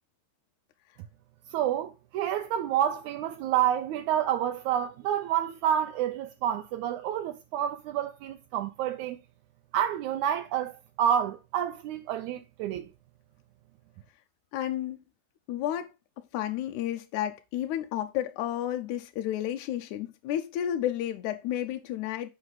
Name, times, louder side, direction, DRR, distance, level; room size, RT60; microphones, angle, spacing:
voice 1, 1.5-9.2 9.7-10.7 11.0-12.9, right 10 dB, 80° right, 2.1 m, -28 dB
voice 2, 14.5-15.0 15.5-15.9 16.3-22.3, left 11 dB, 80° left, 2.1 m, -31 dB
8.0 x 6.2 x 4.0 m
omnidirectional pair, 3.5 m